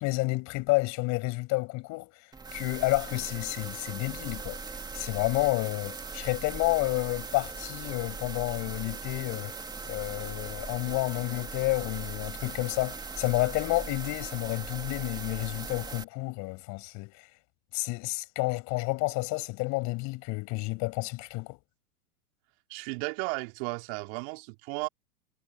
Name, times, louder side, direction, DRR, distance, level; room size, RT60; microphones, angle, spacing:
voice 1, 0.0-2.1 2.5-4.6 4.9-9.6 9.9-17.2 17.7-21.6, left 24 dB, 35° left, 5.8 m, -30 dB
sound 1, 2.3-16.0, right 4 dB, 10° right, 2.5 m, -40 dB
voice 2, 22.7-24.9, right 31 dB, 40° right, 3.0 m, -34 dB
hypercardioid pair, 120°, 48 cm